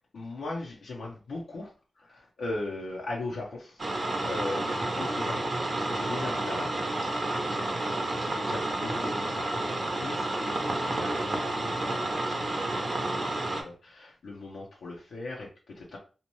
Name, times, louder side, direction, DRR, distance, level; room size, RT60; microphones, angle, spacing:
voice 1, 0.1-3.8 4.1-6.7 7.0-16.0, left 2 dB, 90° left, -3 dB, 0.6 m, -39 dB
sound 1, 3.8-13.6, right 2 dB, 60° right, 0.7 m, -30 dB
2.8 x 2.1 x 2.9 m, 0.35 s
cardioid pair, 45°, 0 cm